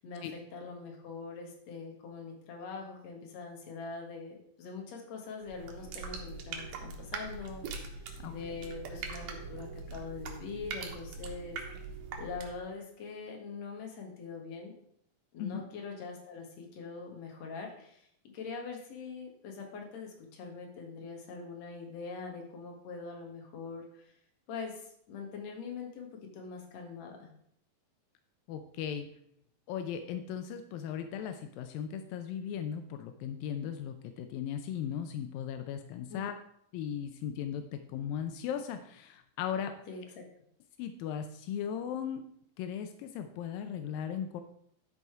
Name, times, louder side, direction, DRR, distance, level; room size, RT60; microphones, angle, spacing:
voice 1, 0.0-11.6 12.2-14.7 15.3-18.1 18.3-24.1 24.5-27.3 36.1-36.3 39.6-40.0, left 4 dB, 55° left, 1 dB, 2.6 m, -43 dB
sound 1, 5.4-12.7, right 4 dB, 80° right, 3.0 m, -42 dB
voice 2, 28.5-29.1 29.7-36.3 36.7-39.8 40.8-42.2 42.6-44.4, left 8 dB, 85° left, 7 dB, 2.4 m, -37 dB
11.5 x 5.5 x 4.7 m, 0.69 s
omnidirectional pair, 4.0 m